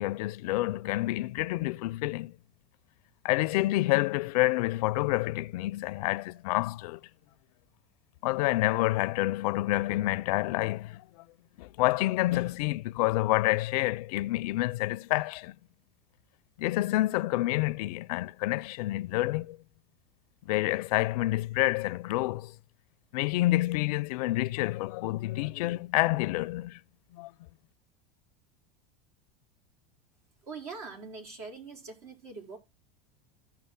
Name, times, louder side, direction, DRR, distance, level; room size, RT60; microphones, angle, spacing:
voice 1, 0.0-2.3 3.2-7.0 8.2-11.0 11.6-15.5 16.6-19.6 20.5-22.5 23.1-26.8 27.1-27.3, left 18 dB, 75° left, 0.5 m, -28 dB
voice 2, 30.4-32.6, right 4 dB, 75° right, 4.7 m, -43 dB
16.0 x 6.0 x 2.2 m
supercardioid pair, 125°, 20 cm